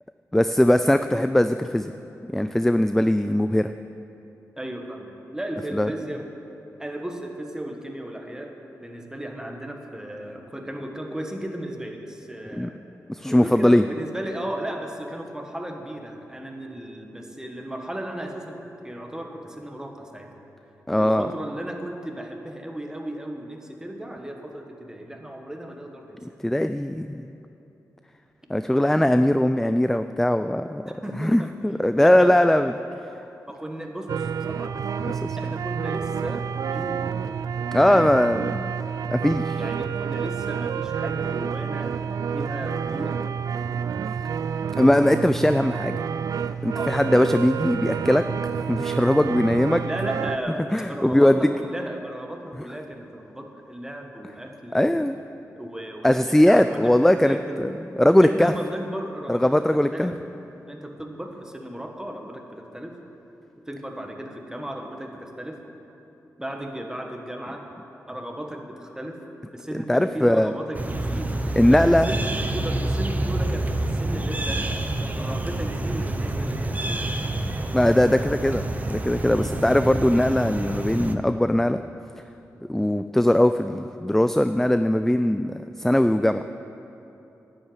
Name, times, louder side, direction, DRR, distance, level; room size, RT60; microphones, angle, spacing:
voice 1, 0.3-1.9 2.3-3.7 5.7-5.9 12.5-12.7 13.1-13.8 20.9-21.3 26.4-27.2 28.5-30.9 31.2-32.7 35.1-35.4 37.7-38.7 39.1-39.6 44.8-46.0 46.6-48.2 48.6-49.8 50.7-51.5 54.7-55.2 56.0-57.7 58.0-58.5 59.3-60.1 69.7-70.5 71.6-72.1 77.7-81.8 82.7-86.4, left 1 dB, 5° left, 10 dB, 0.3 m, -20 dB
voice 2, 4.6-6.3 6.8-12.8 13.2-20.3 20.9-26.2 30.9-31.5 32.0-32.5 33.5-34.8 35.4-37.1 39.6-42.0 42.3-43.3 46.7-47.1 49.8-55.0 55.5-57.7 58.2-60.2 60.7-63.0 63.7-65.6 66.4-67.7 68.1-71.3 71.6-74.7 75.2-77.1 79.3-79.6, right 1 dB, 10° right, 3 dB, 1.6 m, -35 dB
sound 1, 34.1-50.4, right 7 dB, 75° right, 0.4 m, -29 dB
sound 2, 70.7-81.2, right 1 dB, 25° right, 0.8 m, -27 dB
11.0 x 8.1 x 8.9 m, 2.9 s
cardioid pair, 70°, 6 cm